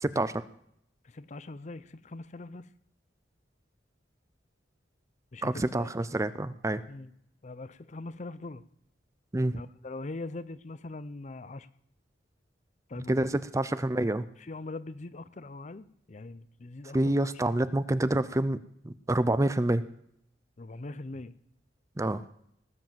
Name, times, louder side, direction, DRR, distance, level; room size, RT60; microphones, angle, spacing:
voice 1, 0.0-0.3 5.4-6.8 9.3-9.6 13.1-14.2 16.9-18.6 18.8-19.8 22.0-22.2, right 1 dB, 20° right, 15 dB, 0.5 m, -27 dB
voice 2, 1.0-2.7 5.3-5.9 6.9-7.1 7.4-8.6 9.5-11.7 12.9-13.1 14.4-17.6 20.6-21.3, left 2 dB, 40° left, 16 dB, 0.6 m, -42 dB
19.0 x 7.7 x 7.4 m, 0.70 s
head